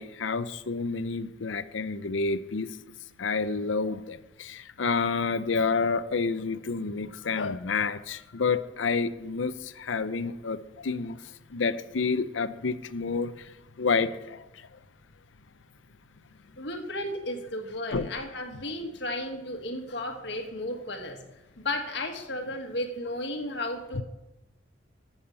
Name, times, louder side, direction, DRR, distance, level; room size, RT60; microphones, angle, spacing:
voice 1, 0.0-2.8 3.2-11.2 11.5-13.5 13.8-14.7 17.9-18.1, left 4 dB, 85° left, 13 dB, 0.6 m, -29 dB
voice 2, 16.6-21.2 21.6-24.0, left 1 dB, 65° left, 4 dB, 1.6 m, -34 dB
14.5 x 7.1 x 5.6 m, 0.96 s
head